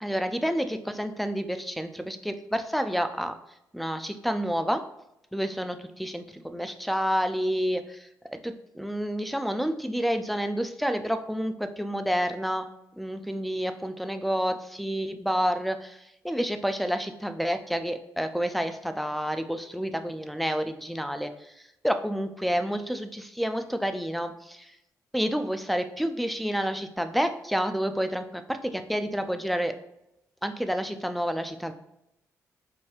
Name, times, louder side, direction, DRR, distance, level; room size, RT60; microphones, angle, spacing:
voice 1, 0.0-3.3 3.7-4.8 5.3-12.7 13.0-16.0 16.2-21.5 21.8-24.7 25.1-29.7 30.4-31.7, equal, ahead, 7 dB, 0.4 m, -29 dB
5.2 x 2.2 x 3.0 m, 0.83 s
hypercardioid pair, 40°, 8 cm